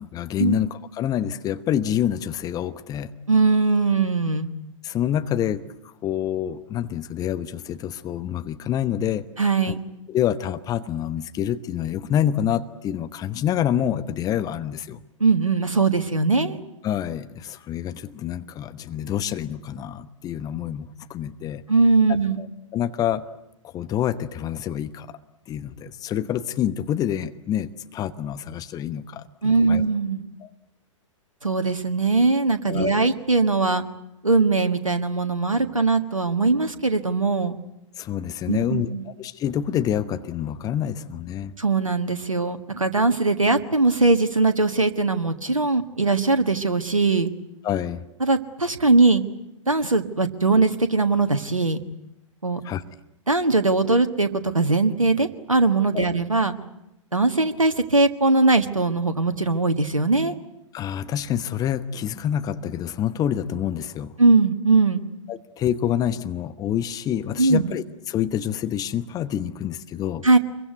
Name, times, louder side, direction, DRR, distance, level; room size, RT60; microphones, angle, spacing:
voice 1, 0.0-3.1 4.8-9.2 9.7-9.8 10.1-15.0 16.8-21.6 22.4-22.5 22.7-23.2 23.6-25.2 25.5-29.8 30.4-30.5 32.7-33.0 38.0-41.5 47.6-48.0 52.6-52.8 55.9-56.1 60.7-64.1 65.3-70.2, left 10 dB, 20° left, 12 dB, 1.0 m, -27 dB
voice 2, 3.3-4.5 9.4-9.8 15.2-16.6 21.7-22.4 29.4-30.2 31.4-33.8 34.2-37.5 38.5-39.0 41.6-47.3 48.2-49.2 49.7-51.8 52.4-52.6 53.3-56.5 57.1-60.3 64.2-65.0 67.4-67.7 70.2-70.4, right 3 dB, 85° right, 9 dB, 1.6 m, -20 dB
26.0 x 23.0 x 9.3 m, 0.84 s
figure-of-eight pair, 105°, 17 cm